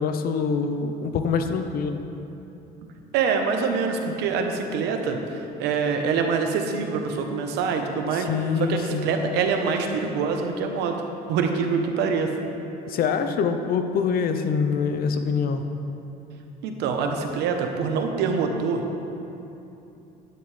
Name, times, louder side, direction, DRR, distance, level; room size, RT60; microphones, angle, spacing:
voice 1, 0.0-2.0 8.2-9.1 12.9-15.6, left 5 dB, 60° left, 7 dB, 0.7 m, -25 dB
voice 2, 3.1-8.3 8.6-11.0 11.3-12.3 16.6-19.0, right 5 dB, 85° right, 4 dB, 1.0 m, -25 dB
10.5 x 9.4 x 3.3 m, 2.9 s
cardioid pair, 110°, 17 cm